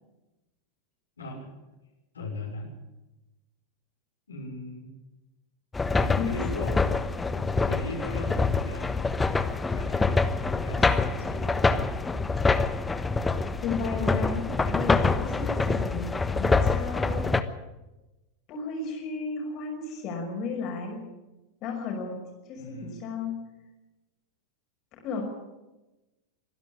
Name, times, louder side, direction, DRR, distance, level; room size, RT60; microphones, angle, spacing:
voice 1, 1.2-1.5 2.1-2.7 4.3-4.9 6.0-6.9 7.3-9.0 9.7-10.2 10.6-11.9 22.6-23.1, left 2 dB, 70° left, -1 dB, 5.9 m, -38 dB
sound 1, 5.7-17.4, left 3 dB, 10° left, 1.2 m, -26 dB
voice 2, 13.6-16.1 16.4-17.3 18.5-21.0 21.6-22.2 22.5-23.3 24.9-25.2, left 4 dB, 40° left, 1 dB, 5.8 m, -33 dB
24.5 x 11.5 x 9.8 m, 1.1 s
figure-of-eight pair, 90°, 0 cm